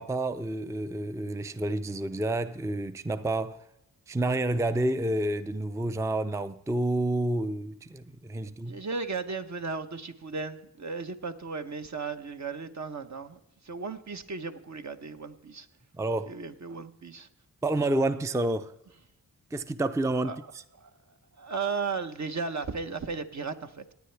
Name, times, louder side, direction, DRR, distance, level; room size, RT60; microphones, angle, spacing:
voice 1, 0.0-3.7 4.1-8.8 16.0-16.3 17.6-18.7 19.5-20.4, right 1 dB, 10° right, 0.5 m, -29 dB
voice 2, 8.6-15.7 16.3-17.3 20.2-20.4 20.8-23.9, right 4 dB, 50° right, 1.0 m, -35 dB
17.5 x 9.5 x 3.4 m
cardioid pair, 55°, 36 cm